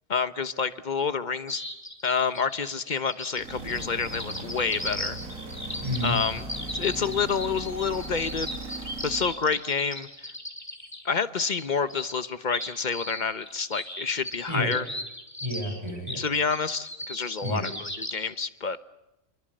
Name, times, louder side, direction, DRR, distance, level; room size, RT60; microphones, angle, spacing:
voice 1, 0.1-1.6 2.0-5.2 6.0-6.4 6.7-8.5 9.0-10.3 11.0-14.8 16.2-18.8, left 5 dB, 40° left, 12 dB, 1.1 m, -28 dB
sound 1, 1.5-18.1, left 1 dB, 10° left, 3.4 m, -37 dB
sound 2, 3.3-9.4, right 2 dB, 90° right, 3.1 m, -39 dB
voice 2, 5.8-6.2 14.5-14.7 15.4-16.2 17.4-17.7, equal, 20° right, 3 dB, 6.3 m, -30 dB
29.0 x 23.5 x 7.9 m, 0.93 s
omnidirectional pair, 1.4 m